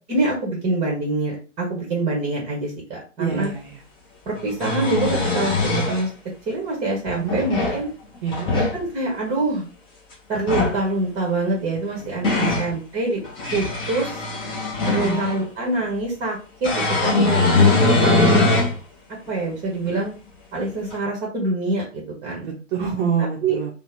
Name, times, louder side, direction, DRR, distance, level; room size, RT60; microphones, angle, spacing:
voice 1, 0.1-3.5 4.3-5.5 5.9-6.1 6.5-7.9 8.7-9.6 10.3-13.2 13.5-14.2 14.9-17.7 18.0-18.5 19.3-20.1 20.5-22.5 23.4-23.6, right 2 dB, 20° right, -2 dB, 0.8 m, -25 dB
voice 2, 3.2-3.8 7.2-7.4 8.2-8.5 12.4-12.6 15.0-15.2 17.3-17.6 22.4-23.7, right 7 dB, 45° right, 0 dB, 0.6 m, -26 dB
sound 1, 3.4-3.5 4.4-6.0 7.1-7.8 8.3-8.8 10.3-10.8 11.8-12.7 13.2-15.4 16.6-18.8 19.3-19.4 20.9-21.0, left 3 dB, 15° left, 0.5 m, -21 dB
2.7 x 2.1 x 3.3 m, 0.35 s
figure-of-eight pair, 120°, 38 cm